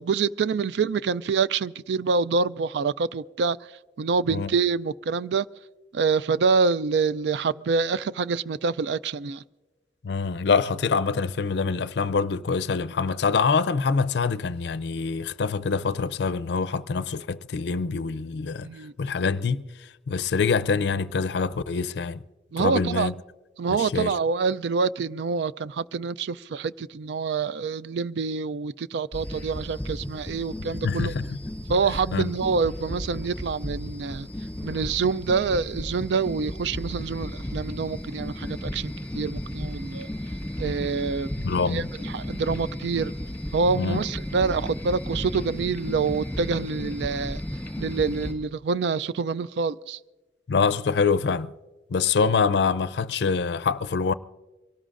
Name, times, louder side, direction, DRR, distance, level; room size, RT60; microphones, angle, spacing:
voice 1, 0.0-3.6 4.0-5.4 5.9-9.4 18.6-18.9 22.5-23.1 23.6-31.1 31.7-34.3 34.6-40.1 40.6-41.3 41.7-43.1 43.5-47.4 47.8-50.0, right 5 dB, 75° right, 0.3 m, -26 dB
voice 2, 10.0-18.7 19.0-22.2 22.6-23.1 23.7-24.2 30.8-31.4 32.1-32.3 41.4-41.9 43.7-44.0 50.5-51.5 51.9-54.1, left 5 dB, 75° left, 0.4 m, -25 dB
sound 1, 29.1-48.3, equal, 10° left, 1.9 m, -34 dB
24.0 x 18.0 x 2.5 m
head